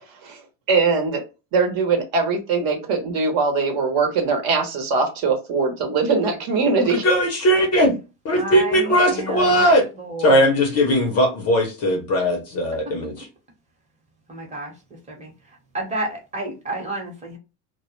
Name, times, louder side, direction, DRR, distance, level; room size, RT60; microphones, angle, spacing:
voice 1, 0.7-1.2 1.5-7.0, right 4 dB, 45° right, 3 dB, 0.9 m, -21 dB
voice 2, 7.0-7.9 8.2-9.8 10.2-13.3, equal, 30° left, 2 dB, 0.6 m, -18 dB
voice 3, 8.3-9.7 10.0-10.6 14.3-14.7 15.1-15.3 15.7-17.4, right 2 dB, 15° right, 0 dB, 0.9 m, -31 dB
2.1 x 2.1 x 3.0 m, 0.29 s
supercardioid pair, 130°, 48 cm